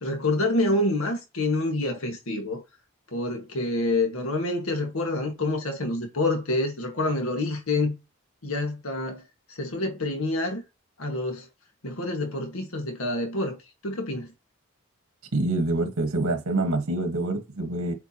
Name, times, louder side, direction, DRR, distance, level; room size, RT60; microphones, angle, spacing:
voice 1, 0.0-2.6 3.1-8.0 8.4-10.6 11.0-11.5 11.8-14.3, left 2 dB, 80° left, 1.7 m, -27 dB
voice 2, 15.3-17.9, right 2 dB, 80° right, 1.5 m, -26 dB
8.2 x 4.4 x 2.9 m
head